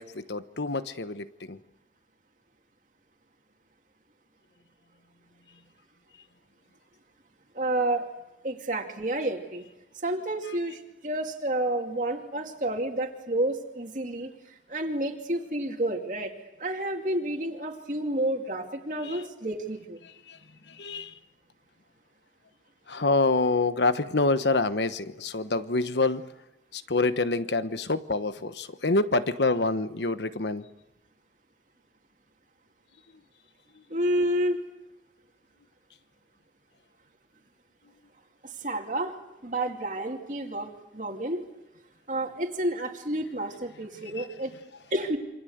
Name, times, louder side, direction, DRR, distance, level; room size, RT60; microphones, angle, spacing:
voice 1, 0.0-1.6 19.0-19.3 20.0-20.4 20.6-21.2 22.9-26.3 26.7-30.7 33.7-33.8 44.0-44.3, left 3 dB, 75° left, 12 dB, 1.2 m, -27 dB
voice 2, 7.5-8.1 8.4-9.6 10.0-14.3 14.7-16.3 16.6-20.0 33.9-34.6 38.6-39.1 39.4-41.4 42.1-44.5 44.9-45.2, right 1 dB, 45° right, 2 dB, 2.4 m, -30 dB
27.5 x 25.0 x 8.0 m, 0.97 s
head